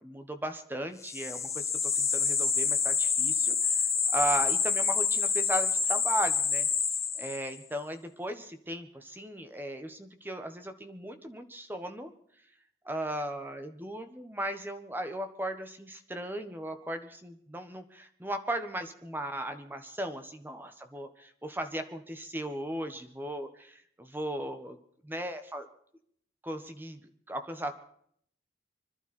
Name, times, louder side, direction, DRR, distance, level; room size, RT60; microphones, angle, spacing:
voice 1, 0.0-3.8 4.1-6.7 7.2-12.1 12.8-21.1 21.4-24.8 25.0-25.7 26.4-27.0 27.3-27.7, right 1 dB, 10° right, 8 dB, 1.4 m, -36 dB
sound 1, 1.0-7.6, left 6 dB, 15° left, 0.9 m, -28 dB
25.5 x 12.0 x 4.4 m, 0.64 s
head